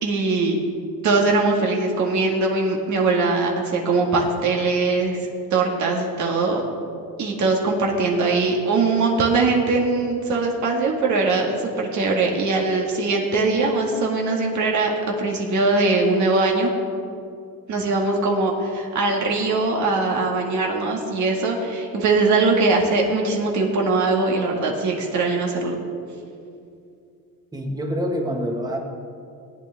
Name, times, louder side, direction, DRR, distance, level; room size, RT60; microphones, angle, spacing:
voice 1, 0.0-0.6 1.0-5.2 5.5-6.6 7.2-16.7 17.7-25.8, right 3 dB, 60° right, 0 dB, 1.9 m, -21 dB
voice 2, 27.5-28.8, equal, 10° right, 1 dB, 1.5 m, -26 dB
18.0 x 9.1 x 3.5 m, 2.5 s
cardioid pair, 125°, 33 cm